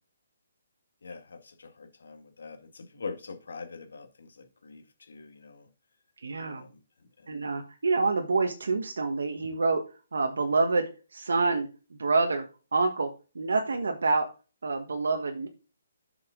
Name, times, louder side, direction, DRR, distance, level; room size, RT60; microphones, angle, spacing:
voice 1, 1.0-5.7 6.4-7.3, left 4 dB, 80° left, 5 dB, 1.9 m, -44 dB
voice 2, 6.2-6.6 7.3-14.3 14.6-15.5, right 3 dB, 90° right, 4 dB, 1.4 m, -27 dB
7.7 x 5.9 x 3.8 m, 0.33 s
hypercardioid pair, 170°, 0 cm